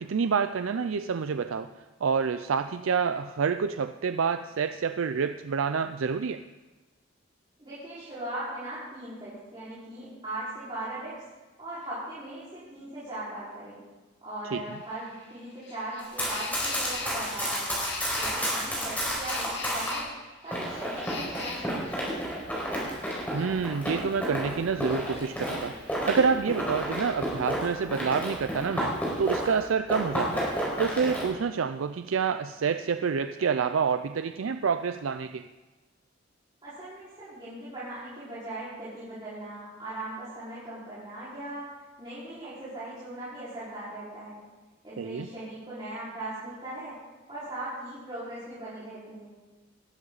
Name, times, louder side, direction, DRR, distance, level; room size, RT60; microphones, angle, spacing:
voice 1, 0.0-1.7 2.0-6.4 14.5-14.6 23.3-30.5 30.8-35.5 45.0-45.3, right 6 dB, 90° right, 10 dB, 0.5 m, -28 dB
voice 2, 7.6-11.1 11.6-13.8 14.2-17.7 18.1-20.1 20.4-22.2 36.6-41.7 42.0-44.4 44.8-46.9 47.3-49.3, right 1 dB, 25° right, -12 dB, 4.8 m, -39 dB
sound 1, 14.7-24.2 24.4-26.0, left 3 dB, 55° left, 2.6 m, -43 dB
Run, 16.0-20.0 20.5-29.6 29.9-31.3, equal, 10° left, 4.9 m, -31 dB
19.0 x 13.0 x 4.0 m, 1.2 s
head